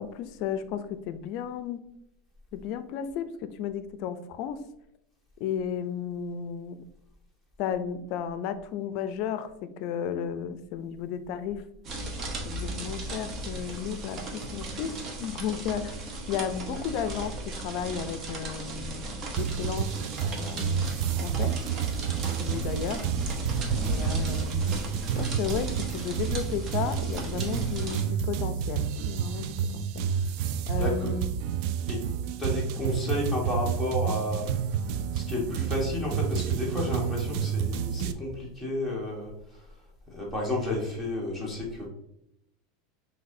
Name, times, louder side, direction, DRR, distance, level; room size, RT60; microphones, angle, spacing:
voice 1, 0.0-1.8 2.5-4.6 5.4-6.8 7.6-11.6 12.4-14.9 15.2-16.0 16.3-19.1 19.4-19.9 20.2-20.9 21.2-21.6 22.4-23.0 23.8-24.6 25.2-30.1 30.7-31.3, left 8 dB, 55° left, 11 dB, 0.4 m, -33 dB
sound 1, 11.8-28.0, right 2 dB, 35° right, 0.8 m, -36 dB
sound 2, 19.4-38.1, right 8 dB, 60° right, 0.3 m, -30 dB
voice 2, 30.7-31.1 31.9-32.0 32.4-34.8 35.1-39.8 40.1-41.9, left 2 dB, 5° right, -3 dB, 1.1 m, -32 dB
5.8 x 2.7 x 2.6 m, 0.81 s
supercardioid pair, 130°, 0 cm